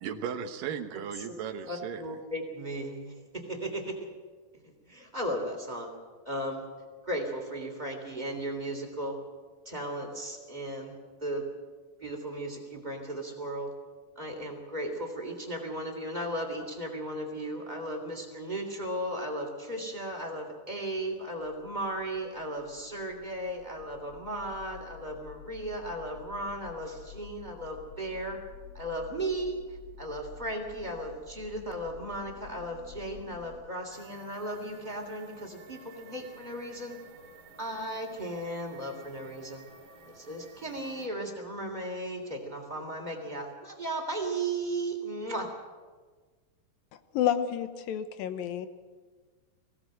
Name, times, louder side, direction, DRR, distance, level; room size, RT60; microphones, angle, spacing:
voice 1, 0.0-2.0, right 7 dB, 75° right, 7 dB, 2.8 m, -36 dB
voice 2, 1.6-4.1 4.6-5.9 6.2-6.6 7.0-9.2 9.6-11.5 12.0-13.7 14.1-28.4 28.7-37.0 37.6-39.7 40.1-45.5, right 1 dB, 15° right, 2 dB, 2.7 m, -36 dB
sound 1, 21.3-33.6, left 9 dB, 35° left, 1.5 m, -51 dB
sound 2, 33.9-41.1, right 3 dB, 45° right, 3.1 m, -53 dB
voice 3, 47.1-48.7, left 10 dB, 80° left, 10 dB, 2.8 m, -29 dB
21.0 x 17.0 x 7.8 m, 1.4 s
omnidirectional pair, 4.0 m